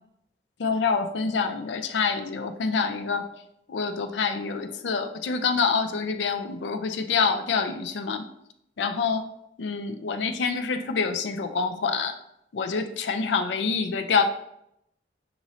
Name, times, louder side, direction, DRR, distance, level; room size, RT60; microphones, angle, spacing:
voice 1, 0.6-3.3 3.7-8.2 8.8-9.3 9.6-12.1 12.5-14.2, left 5 dB, 90° left, 7 dB, 0.4 m, -26 dB
6.0 x 3.0 x 2.7 m, 0.78 s
head